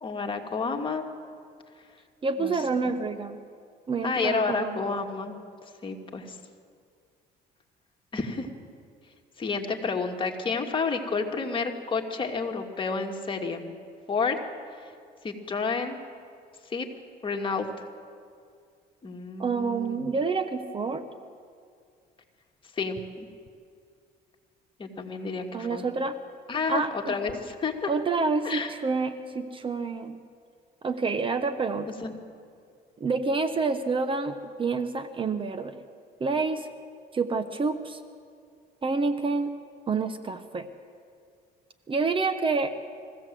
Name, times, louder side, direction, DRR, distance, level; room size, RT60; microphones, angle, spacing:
voice 1, 0.0-1.0 2.4-2.5 4.0-5.3 5.8-6.4 8.1-8.5 9.4-13.7 14.1-14.4 15.2-16.0 16.7-16.9 17.2-17.7 19.0-20.2 22.8-23.3 24.8-25.8 26.5-27.9 28.4-28.7 32.0-32.2, left 4 dB, 30° left, 3 dB, 2.0 m, -30 dB
voice 2, 2.2-3.4 3.9-4.8 19.4-21.0 25.5-26.2 26.7-27.2 27.9-30.2 30.8-31.9 33.0-35.8 36.2-36.7 37.1-38.0 38.8-39.5 39.9-40.7 41.9-42.7, right 4 dB, 30° right, 10 dB, 1.0 m, -28 dB
22.0 x 15.5 x 7.6 m, 2.2 s
cardioid pair, 110°, 17 cm